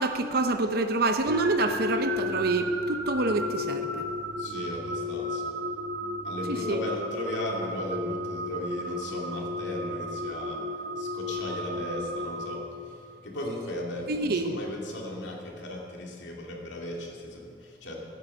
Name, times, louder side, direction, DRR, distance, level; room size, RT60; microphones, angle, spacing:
voice 1, 0.0-4.0 6.5-6.8 14.1-14.6, right 3 dB, 55° right, 7 dB, 0.7 m, -27 dB
sound 1, 1.2-13.2, left 1 dB, 85° right, 1.3 m, -33 dB
voice 2, 4.4-5.5 6.2-18.0, left 1 dB, 75° left, -1 dB, 2.4 m, -37 dB
15.5 x 9.4 x 5.6 m, 2.2 s
head